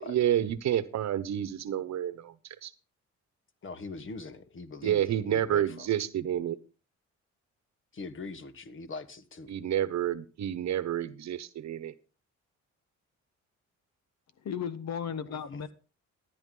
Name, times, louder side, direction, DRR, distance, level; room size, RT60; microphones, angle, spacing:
voice 1, 0.0-2.3 2.6-2.7 4.8-6.6 9.5-11.9, right 11 dB, 65° right, 1.1 m, -29 dB
voice 2, 3.6-5.9 7.9-9.5 15.1-15.6, left 3 dB, 40° left, 1.5 m, -42 dB
voice 3, 14.4-15.7, left 7 dB, 60° left, 1.4 m, -35 dB
14.0 x 10.5 x 3.8 m
cardioid pair, 90°, 30 cm